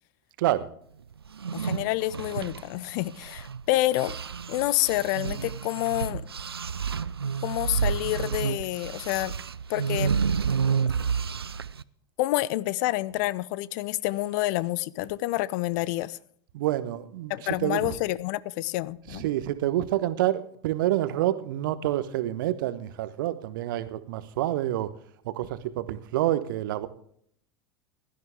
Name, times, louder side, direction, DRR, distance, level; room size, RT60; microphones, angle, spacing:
voice 1, 0.4-0.7 16.5-17.3 17.6-18.0 19.1-24.9 25.2-26.9, right 13 dB, 60° right, 1.1 m, -28 dB
sound 1, 1.3-3.6 3.9-11.8, right 6 dB, 80° right, 0.5 m, -30 dB
voice 2, 1.5-4.2 4.5-6.3 7.4-9.3 9.7-10.1 12.2-16.2 17.3-19.2, left 17 dB, 50° left, 0.6 m, -28 dB
16.5 x 12.5 x 3.5 m
figure-of-eight pair, 80°, 13 cm